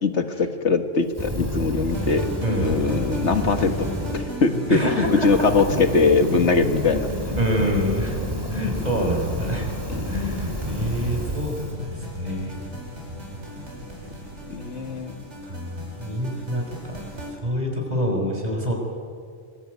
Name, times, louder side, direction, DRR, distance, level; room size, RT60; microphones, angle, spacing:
voice 1, 0.0-2.3 2.6-7.1 9.9-10.4 14.5-15.2, left 4 dB, 70° left, 8 dB, 1.9 m, -22 dB
Fire, 1.1-4.2 4.7-11.7, equal, 20° right, 3.5 m, -31 dB
sound 1, 1.9-17.3, left 1 dB, 70° right, 5.5 m, -34 dB
voice 2, 2.4-2.8 4.7-5.3 7.4-8.2 8.5-9.7 10.1-12.6 15.5-17.0 17.4-18.7, equal, 35° right, 1 dB, 6.0 m, -26 dB
25.5 x 22.0 x 9.5 m, 2.1 s
omnidirectional pair, 1.2 m